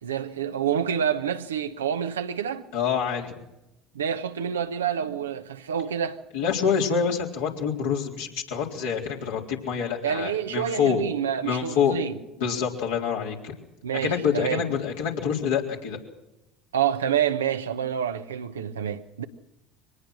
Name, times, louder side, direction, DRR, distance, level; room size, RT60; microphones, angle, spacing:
voice 1, 0.0-2.7 3.9-6.2 10.0-12.2 13.8-14.6 16.7-19.2, right 8 dB, 80° right, 1.1 m, -28 dB
voice 2, 2.7-3.3 6.3-11.0 11.4-12.0 12.4-13.5 14.0-16.0, left 7 dB, 70° left, 3.8 m, -26 dB
23.5 x 19.5 x 6.3 m
figure-of-eight pair, 65°, 0 cm